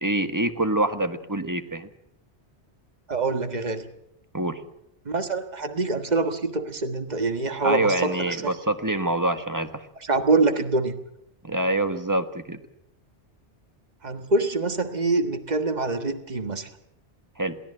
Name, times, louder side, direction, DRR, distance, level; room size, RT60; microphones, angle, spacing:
voice 1, 0.0-1.9 4.3-4.6 7.6-9.9 11.4-12.6 17.4-17.6, right 1 dB, 15° right, 9 dB, 1.3 m, -25 dB
voice 2, 3.1-3.9 5.0-8.5 10.0-11.0 14.0-16.7, right 3 dB, 40° right, 8 dB, 1.6 m, -25 dB
22.5 x 17.0 x 7.8 m, 0.77 s
omnidirectional pair, 1.2 m